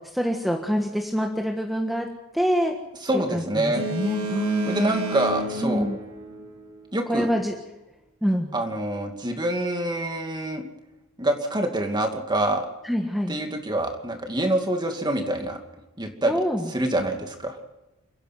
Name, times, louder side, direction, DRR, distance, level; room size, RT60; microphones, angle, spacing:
voice 1, 0.1-2.1 2.3-2.7 3.1-5.1 5.6-6.0 7.1-7.5 8.2-8.5 12.8-13.4 16.3-16.7, equal, ahead, 2 dB, 1.6 m, -26 dB
voice 2, 3.0-3.9 4.7-5.9 6.9-7.3 8.5-10.6 11.2-12.7 13.3-15.6 16.0-16.3 16.7-17.6, right 1 dB, 20° right, 4 dB, 2.5 m, -26 dB
Boat Water vehicle, 3.7-6.9, right 2 dB, 70° right, 4.8 m, -32 dB
29.0 x 10.5 x 9.3 m, 0.96 s
head